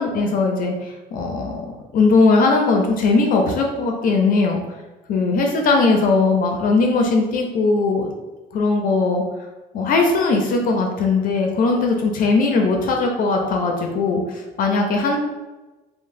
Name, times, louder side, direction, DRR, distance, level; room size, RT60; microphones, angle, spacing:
voice 1, 0.0-1.7 1.9-4.6 5.1-8.1 8.5-9.2 9.7-15.2, left 3 dB, 55° left, 2 dB, 0.4 m, -19 dB
3.0 x 2.0 x 2.6 m, 1.2 s
cardioid pair, 110°, 17 cm